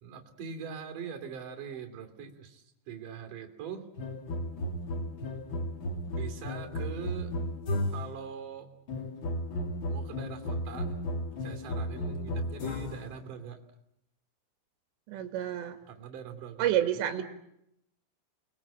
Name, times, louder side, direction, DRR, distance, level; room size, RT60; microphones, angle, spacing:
voice 1, 0.0-3.8 6.1-7.3 7.9-8.7 9.9-11.0 11.4-13.6 15.9-17.2, right 7 dB, 50° right, 5 dB, 4.0 m, -42 dB
sound 1, 4.0-8.2 8.9-13.1, left 1 dB, 55° left, 1.4 m, -34 dB
voice 2, 15.1-15.8 16.6-17.2, right 11 dB, 80° right, 6 dB, 3.9 m, -29 dB
29.5 x 21.5 x 8.7 m, 0.80 s
omnidirectional pair, 5.1 m